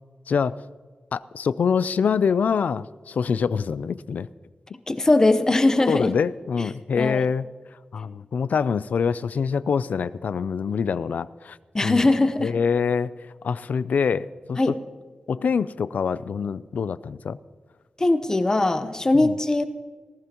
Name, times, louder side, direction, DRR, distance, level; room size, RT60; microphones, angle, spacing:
voice 1, 0.3-0.6 1.1-4.3 5.9-7.5 7.9-11.6 11.8-12.1 12.4-13.1 13.4-14.7 15.3-17.4 19.1-19.3, left 6 dB, 80° left, 16 dB, 0.4 m, -25 dB
voice 2, 4.9-6.1 7.0-7.2 11.7-12.5 14.6-14.7 18.0-19.6, left 2 dB, 25° left, 9 dB, 0.9 m, -20 dB
19.5 x 15.0 x 3.0 m, 1.5 s
wide cardioid pair, 145°, 3 cm